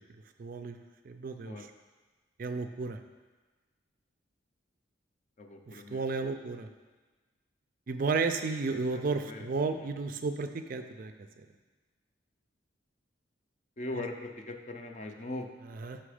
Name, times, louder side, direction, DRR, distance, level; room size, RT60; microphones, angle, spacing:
voice 1, 0.4-1.7 2.4-3.0 5.7-6.7 7.9-11.5 13.9-14.0 15.6-16.0, right 4 dB, 45° right, 7 dB, 0.4 m, -33 dB
voice 2, 5.4-6.0 9.3-9.4 13.8-15.5, left 2 dB, 35° left, 4 dB, 0.5 m, -39 dB
6.1 x 5.8 x 4.9 m, 1.3 s
head